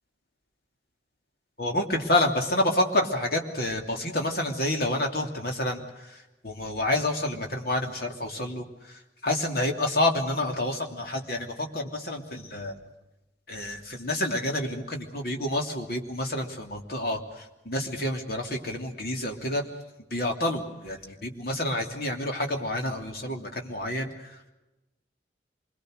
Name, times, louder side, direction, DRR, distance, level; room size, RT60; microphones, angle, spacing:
voice 1, 1.6-12.8 13.5-19.6 20.1-24.4, left 1 dB, 55° left, 3 dB, 3.0 m, -29 dB
27.0 x 22.0 x 6.5 m, 1.0 s
head